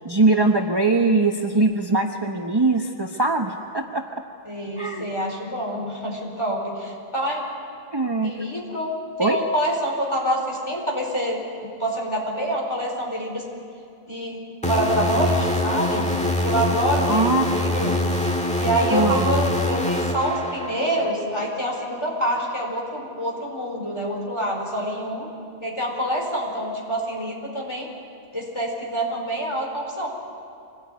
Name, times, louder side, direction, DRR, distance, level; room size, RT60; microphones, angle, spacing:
voice 1, 0.0-4.2 4.8-5.0 7.9-8.4 9.2-9.4 17.1-17.5 18.9-19.3, right 3 dB, 25° right, 2 dB, 1.0 m, -21 dB
voice 2, 4.4-7.5 8.2-8.9 9.2-11.4 11.8-13.4 14.1-16.1 16.4-17.9 18.6-25.3 25.6-27.9 28.3-30.1, right 1 dB, 25° left, -1 dB, 4.8 m, -26 dB
sound 1, 14.6-21.1, left 1 dB, 5° left, 1.6 m, -24 dB
24.5 x 18.5 x 9.4 m, 2.5 s
omnidirectional pair, 1.0 m